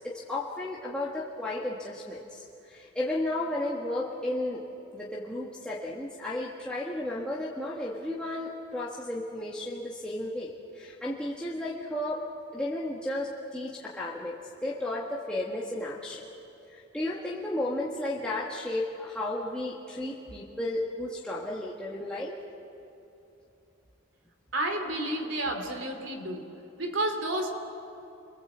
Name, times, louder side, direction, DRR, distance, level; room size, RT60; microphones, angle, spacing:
voice 1, 0.0-4.6 4.9-12.2 12.5-16.3 16.7-22.4, left 1 dB, 5° left, -6 dB, 1.6 m, -33 dB
voice 2, 24.5-26.5 26.8-27.5, right 1 dB, 60° right, 5 dB, 2.9 m, -31 dB
29.0 x 23.0 x 8.1 m, 2.8 s
head